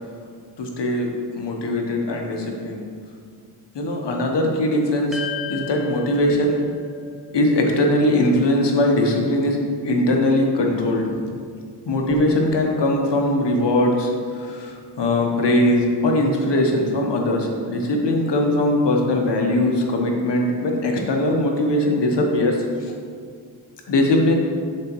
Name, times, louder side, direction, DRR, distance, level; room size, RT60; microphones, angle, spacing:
voice 1, 0.6-1.1 1.3-2.8 3.7-5.2 5.5-6.6 7.3-11.3 11.8-22.9 23.9-24.4, left 1 dB, 70° left, 1 dB, 1.2 m, -20 dB
sound 1, 5.1-9.6, left 5 dB, ahead, 1.0 m, -36 dB
6.5 x 4.1 x 4.6 m, 2.1 s
cardioid pair, 60°, 44 cm